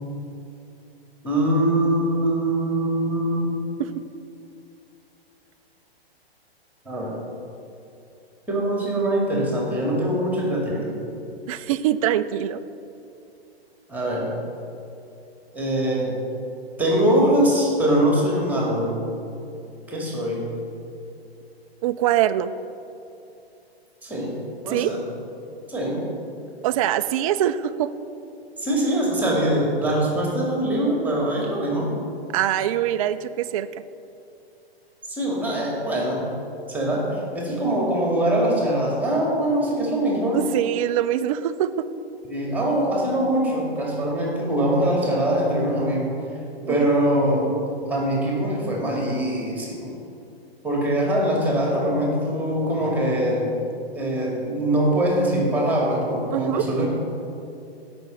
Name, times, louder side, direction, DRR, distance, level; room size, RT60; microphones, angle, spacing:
voice 1, 1.2-3.5 6.9-7.1 8.5-10.9 13.9-14.3 15.5-16.2 16.8-19.0 19.9-20.5 24.0-24.3 24.6-25.0 25.7-26.0 28.6-31.9 35.1-36.2 36.7-40.4 42.2-46.1 46.7-47.5 47.9-49.9 50.6-53.5 53.9-56.9, right 1 dB, 5° right, -2 dB, 2.1 m, -23 dB
voice 2, 11.5-12.6 21.8-22.5 24.7-24.9 26.6-27.9 32.3-33.7 40.3-41.9 46.7-46.8 56.3-56.6, right 12 dB, 35° right, 10 dB, 0.4 m, -23 dB
16.0 x 6.0 x 5.3 m, 2.7 s
hypercardioid pair, 130°, 32 cm